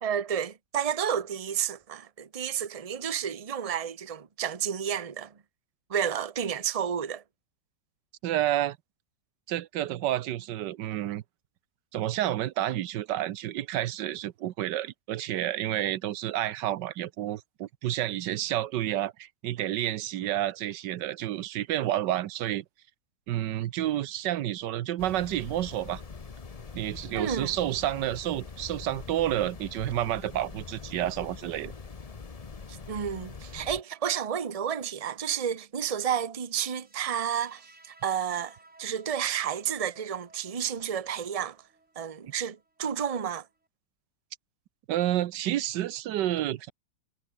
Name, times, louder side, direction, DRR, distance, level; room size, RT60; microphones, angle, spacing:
voice 1, 0.0-5.3 5.9-7.2 27.1-27.5 32.7-37.6 38.0-41.6 42.0-43.4, right 8 dB, 25° right, 0.9 m, -31 dB
voice 2, 8.2-8.8 9.5-11.2 11.9-22.6 23.3-26.0 26.7-31.7 44.9-46.7, right 13 dB, 80° right, 1.4 m, -30 dB
sound 1, 25.0-33.8, left 5 dB, 30° left, 0.8 m, -43 dB
sound 2, 36.6-43.7, right 2 dB, 40° right, 4.7 m, -59 dB
omnidirectional pair, 1.9 m